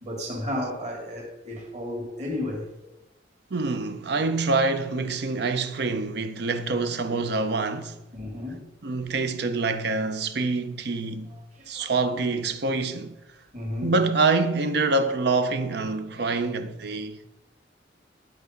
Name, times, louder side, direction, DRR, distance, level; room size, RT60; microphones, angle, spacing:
voice 1, 0.0-2.7 8.1-8.7 11.8-11.9 13.5-13.9, left 1 dB, 40° right, 2.2 m, -32 dB
voice 2, 3.5-8.0 8.8-11.3 11.7-13.2 13.8-17.2, right 3 dB, 65° right, 0.6 m, -26 dB
11.0 x 4.9 x 5.1 m
head